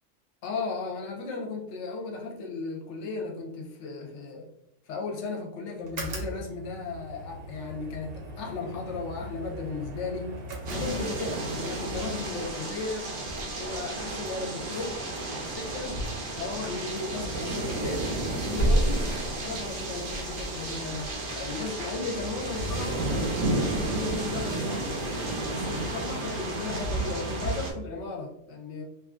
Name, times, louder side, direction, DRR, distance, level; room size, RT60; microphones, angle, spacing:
voice 1, 0.4-4.5 4.9-10.4 10.7-13.2 13.6-15.0 15.3-16.0 16.3-19.1 19.4-23.0 23.5-24.9 25.5-28.8, left 3 dB, 65° left, 0 dB, 0.8 m, -35 dB
sound 1, 5.8-11.5, right 1 dB, 55° right, 0.8 m, -40 dB
sound 2, 10.7-27.7, right 2 dB, 80° right, 1.0 m, -32 dB
sound 3, 13.2-14.3 14.7-15.8 16.1-16.2 16.5-16.7 17.0-17.1 17.4-20.0, right 1 dB, 45° left, 0.3 m, -30 dB
2.8 x 2.3 x 2.4 m, 0.83 s
omnidirectional pair, 1.4 m